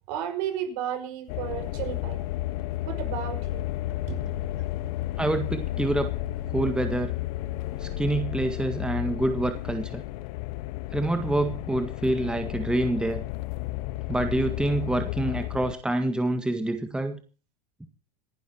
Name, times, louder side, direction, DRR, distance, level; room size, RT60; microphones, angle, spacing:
voice 1, 0.1-2.2 2.9-3.6 4.1-4.3, right 10 dB, 65° right, 6 dB, 5.3 m, -33 dB
sound 1, 1.3-15.7, left 15 dB, 65° left, 1.2 m, -32 dB
voice 2, 5.2-6.1 6.5-7.1 7.8-10.0 10.9-13.2 14.1-17.2, right 1 dB, 5° right, 7 dB, 1.8 m, -27 dB
27.5 x 11.5 x 2.9 m, 0.35 s
supercardioid pair, 115°, 20 cm